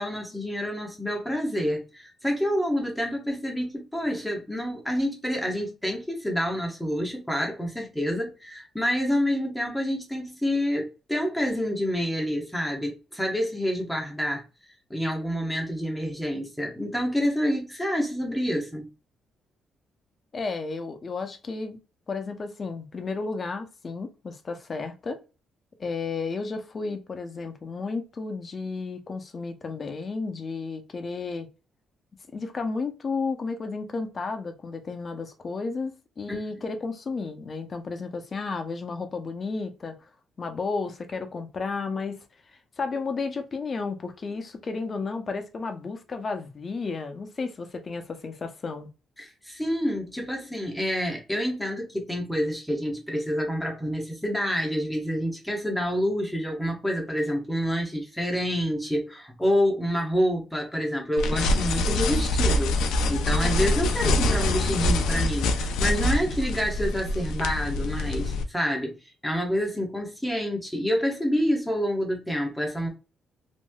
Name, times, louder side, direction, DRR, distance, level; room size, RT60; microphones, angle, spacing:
voice 1, 0.0-14.4 14.9-18.9 36.3-36.4 49.2-69.0 69.2-72.9, equal, 5° left, 1.0 m, -28 dB
voice 2, 20.3-21.8 22.1-25.2 25.8-31.5 32.3-40.0 40.4-42.2 42.8-48.9, left 4 dB, 40° left, 0.6 m, -32 dB
sound 1, 61.2-68.4, left 2 dB, 90° left, 0.4 m, -25 dB
3.1 x 2.6 x 2.2 m
cardioid pair, 90°, 0 cm